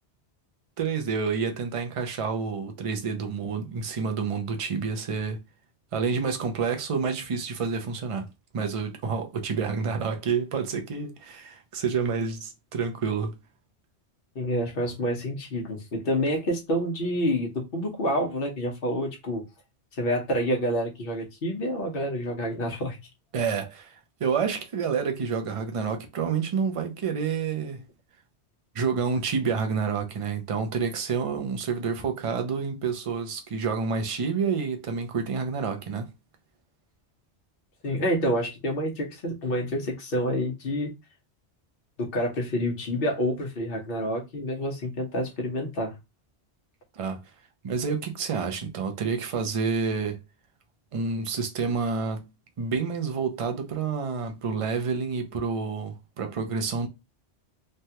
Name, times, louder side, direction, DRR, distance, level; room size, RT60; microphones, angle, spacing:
voice 1, 0.8-5.4 5.9-8.3 8.5-13.4 23.3-27.8 28.7-36.1 46.9-47.2 47.6-50.2 50.9-52.3 52.6-56.9, right 5 dB, 40° right, 0.5 m, -29 dB
voice 2, 14.3-19.4 19.9-23.0 37.8-40.9 42.0-45.9, equal, 55° left, 1.1 m, -28 dB
3.2 x 2.3 x 2.7 m
omnidirectional pair, 1.1 m